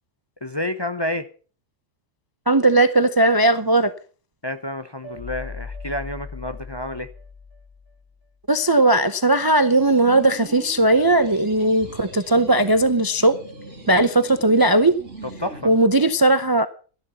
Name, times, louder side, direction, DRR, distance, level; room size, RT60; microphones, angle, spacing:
voice 1, 0.4-1.3 4.4-7.1 13.9-14.0 15.4-15.7, left 1 dB, 25° left, 0.7 m, -29 dB
voice 2, 2.5-3.9 8.5-13.4 13.9-14.9 15.6-16.7, right 2 dB, 25° right, 0.5 m, -17 dB
sound 1, 5.0-8.2, left 4 dB, 45° left, 2.3 m, -38 dB
sound 2, 9.7-15.8, right 2 dB, 50° right, 2.9 m, -41 dB
13.0 x 11.0 x 5.5 m
omnidirectional pair, 1.3 m